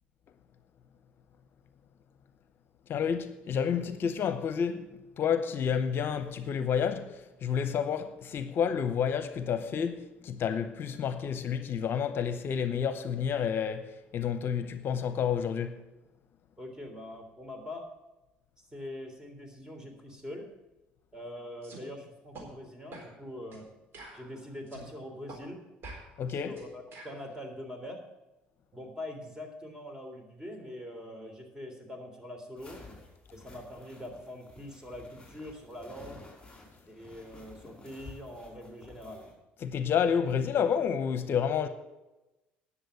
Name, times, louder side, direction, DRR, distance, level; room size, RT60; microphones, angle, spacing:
voice 1, 2.9-15.8 26.2-26.6 39.6-41.7, left 7 dB, 55° left, 0.8 m, -30 dB
voice 2, 16.6-17.9 18.7-20.5 21.1-23.7 24.1-25.6 26.3-28.0 28.7-32.8 33.3-36.2 36.9-39.3, left 1 dB, 15° right, 3.4 m, -43 dB
sound 1, 21.6-21.8 22.3-22.5 22.9-23.1 23.5-23.6 23.9-24.9 25.3-25.4 25.8-27.2, right 2 dB, 55° right, 3.9 m, -47 dB
sound 2, 32.6-39.3, left 3 dB, 15° left, 5.1 m, -52 dB
10.5 x 7.1 x 8.4 m
hypercardioid pair, 70°, 5 cm